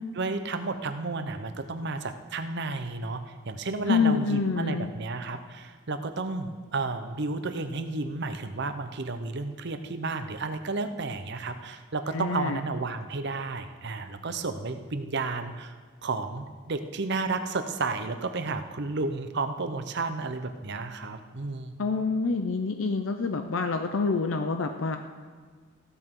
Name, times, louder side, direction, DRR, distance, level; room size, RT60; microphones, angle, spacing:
voice 1, 0.2-15.7 16.0-21.9, right 3 dB, 60° right, 8 dB, 0.8 m, -32 dB
voice 2, 3.9-4.9 12.1-12.6 21.8-25.0, left 4 dB, 75° left, 6 dB, 0.6 m, -27 dB
15.0 x 12.5 x 3.8 m, 1.5 s
head